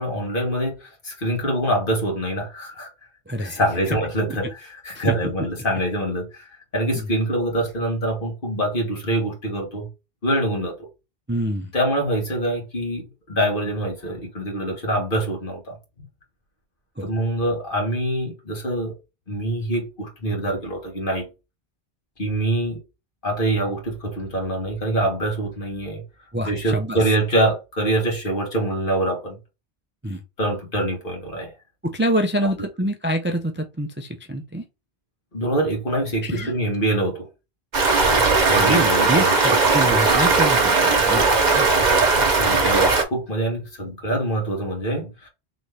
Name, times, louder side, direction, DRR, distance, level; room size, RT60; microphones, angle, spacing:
voice 1, 0.0-2.9 3.4-9.9 10.2-10.9 11.7-15.8 17.0-18.9 19.3-21.3 22.2-22.8 23.2-26.0 26.5-29.4 30.4-31.5 32.4-32.5 35.3-37.3 38.5-39.5 42.4-45.3, right 1 dB, 60° left, 1.8 m, -25 dB
voice 2, 3.3-3.6 4.9-5.1 6.9-7.0 11.3-11.7 17.0-17.1 26.3-27.0 30.0-30.2 31.8-34.6 36.2-36.5 38.6-41.2 41.5-41.7, right 1 dB, 15° right, 0.4 m, -26 dB
Stream, 37.7-43.0, right 3 dB, 45° right, 1.0 m, -18 dB
4.0 x 3.1 x 3.3 m
omnidirectional pair, 1.0 m